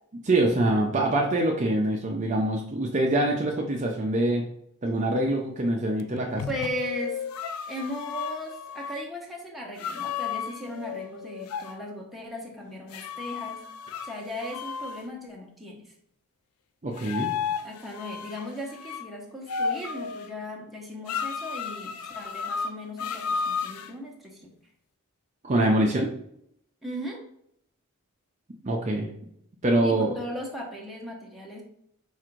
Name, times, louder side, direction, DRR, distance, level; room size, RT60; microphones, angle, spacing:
voice 1, 0.2-4.4 4.8-6.4 16.8-17.3 25.4-26.1 28.6-29.1 29.6-30.2, right 1 dB, 30° right, 0 dB, 0.5 m, -24 dB
sound 1, 6.0-9.0 9.8-11.8 12.9-15.1 17.0-19.0 19.5-20.3 21.1-23.9, left 6 dB, 80° left, 0.4 m, -33 dB
voice 2, 6.3-7.2 7.7-13.6 14.0-15.8 17.6-24.5 26.8-27.2 29.8-31.6, equal, ahead, -2 dB, 0.8 m, -37 dB
4.8 x 2.5 x 4.4 m, 0.71 s
head